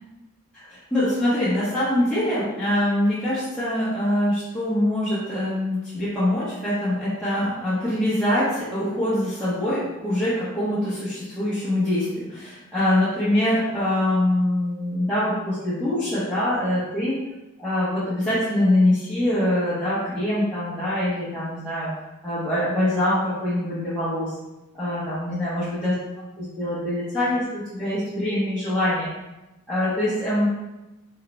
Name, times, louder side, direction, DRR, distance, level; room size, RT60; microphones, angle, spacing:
voice 1, 0.5-17.2 17.6-21.9 22.2-24.4 24.7-25.9 26.4-29.1 29.7-30.5, left 1 dB, 5° left, -13 dB, 1.0 m, -24 dB
4.7 x 4.4 x 2.2 m, 1.0 s
head